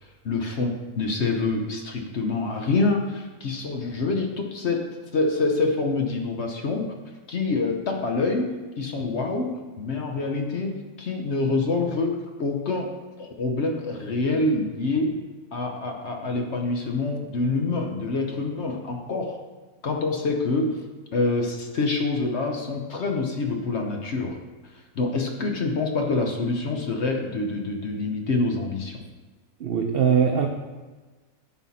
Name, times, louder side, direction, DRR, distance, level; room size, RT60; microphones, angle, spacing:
voice 1, 0.2-4.8 5.1-6.9 7.3-8.5 8.8-12.9 13.2-15.1 15.5-19.4 19.8-20.8 21.1-24.4 24.9-29.0, left 3 dB, 55° left, 3 dB, 0.9 m, -26 dB
voice 2, 29.6-30.5, right 7 dB, 65° right, 3 dB, 0.5 m, -21 dB
11.0 x 4.2 x 4.1 m, 1.3 s
omnidirectional pair, 1.7 m